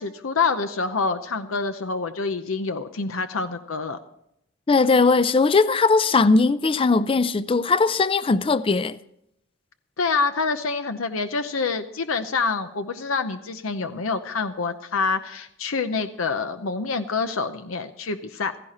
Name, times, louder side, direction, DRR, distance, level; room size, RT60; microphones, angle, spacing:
voice 1, 0.0-4.0 10.0-18.5, left 4 dB, 90° left, 0.8 m, -26 dB
voice 2, 4.7-9.0, left 4 dB, 25° left, 0.4 m, -19 dB
16.0 x 15.0 x 4.3 m
head